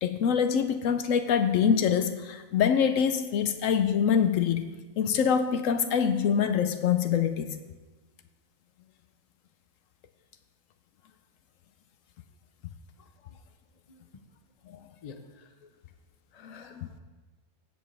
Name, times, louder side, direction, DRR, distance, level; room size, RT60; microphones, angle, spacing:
voice 1, 0.0-4.7 5.0-7.6 14.7-14.8 16.4-16.9, left 7 dB, 75° left, 10 dB, 0.9 m, -25 dB
voice 2, 15.0-15.7 16.3-17.0, left 5 dB, 35° left, 7 dB, 0.7 m, -49 dB
16.0 x 7.9 x 3.3 m, 1.2 s
omnidirectional pair, 1.4 m